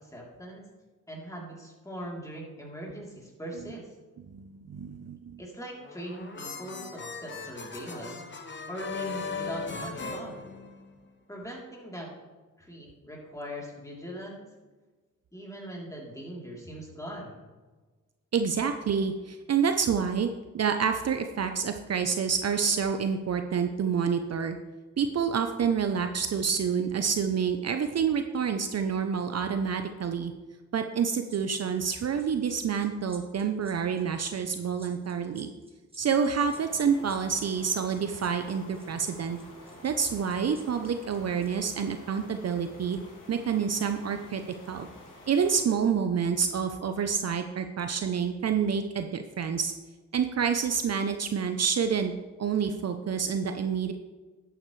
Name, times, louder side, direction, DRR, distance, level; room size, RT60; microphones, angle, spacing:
voice 1, 0.0-0.7 1.1-3.9 5.4-8.2 8.7-10.3 11.3-12.1 12.6-14.5 15.3-17.4, equal, 10° left, -3 dB, 3.3 m, -40 dB
voice 2, 4.3-5.3 18.3-20.3 20.5-24.6 25.0-30.3 30.7-35.5 36.0-39.4 39.8-43.0 43.3-44.4 44.7-44.9 45.3-49.7 50.1-52.1 52.4-53.9, right 6 dB, 50° right, 7 dB, 0.7 m, -28 dB
sound 1, 5.8-11.1, left 4 dB, 35° left, 1.1 m, -38 dB
sound 2, 31.3-41.8 42.1-42.3, right 3 dB, 15° right, 2.2 m, -53 dB
sound 3, 36.4-45.6, left 2 dB, 80° left, 2.6 m, -50 dB
12.0 x 8.9 x 3.2 m, 1.3 s
cardioid pair, 85°, 32 cm